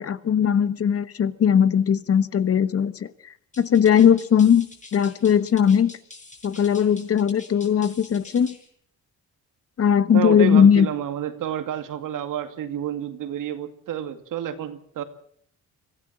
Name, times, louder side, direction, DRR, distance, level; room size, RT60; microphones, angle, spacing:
voice 1, 0.0-3.1 3.6-4.7 4.9-5.9 6.4-8.6 9.8-10.9, left 8 dB, 45° left, 15 dB, 1.2 m, -19 dB
sound 1, 3.5-8.7, left 3 dB, 25° left, 5.9 m, -46 dB
voice 2, 10.1-15.0, right 10 dB, 80° right, 9 dB, 2.4 m, -29 dB
24.5 x 15.5 x 7.5 m, 0.64 s
cardioid pair, 115°, 32 cm